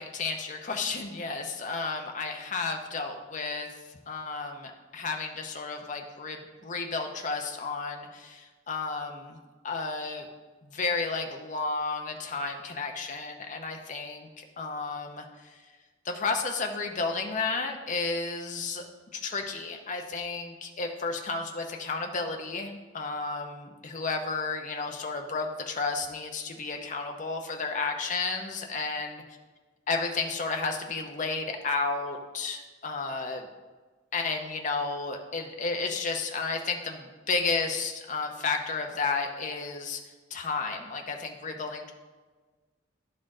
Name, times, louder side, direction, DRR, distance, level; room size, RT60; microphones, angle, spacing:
voice 1, 0.0-3.7 4.1-9.4 9.6-10.3 10.6-15.6 16.0-18.9 19.1-29.2 29.9-33.5 34.1-40.0 40.3-41.9, left 4 dB, 40° left, 3 dB, 0.7 m, -32 dB
11.0 x 4.3 x 3.8 m, 1.3 s
head